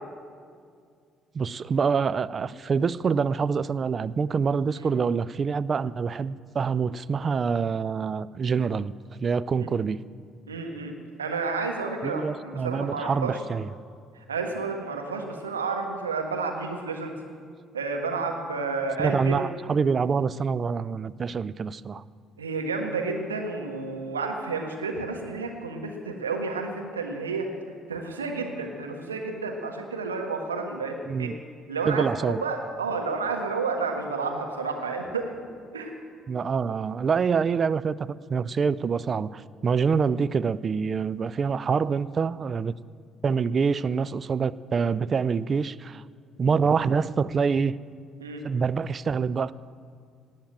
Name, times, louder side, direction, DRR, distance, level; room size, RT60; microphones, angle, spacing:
voice 1, 1.3-8.9 9.2-10.0 12.0-13.7 19.0-22.0 31.1-31.4 31.9-32.4 36.3-42.7 43.2-46.0 46.4-47.7 48.4-49.5, right 5 dB, 40° right, 18 dB, 0.4 m, -26 dB
voice 2, 10.5-10.9 11.2-13.4 14.3-17.1 17.7-19.5 22.4-27.5 27.9-31.3 31.7-35.3 35.7-35.9 48.2-48.4, right 4 dB, 80° right, 2 dB, 1.5 m, -31 dB
18.5 x 7.4 x 9.0 m, 2.1 s
figure-of-eight pair, 50°, 0 cm